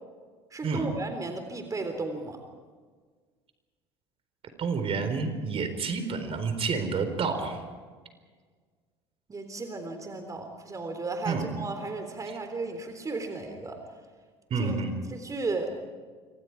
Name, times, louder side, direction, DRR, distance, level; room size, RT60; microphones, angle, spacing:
voice 1, 0.5-2.4 9.3-13.8 14.6-14.8 15.1-15.8, right 3 dB, 25° right, 6 dB, 3.6 m, -34 dB
voice 2, 4.6-7.6 11.3-11.5 14.5-14.9, right 4 dB, 40° right, 8 dB, 4.2 m, -29 dB
27.0 x 26.0 x 4.8 m, 1.5 s
hypercardioid pair, 70°, 14 cm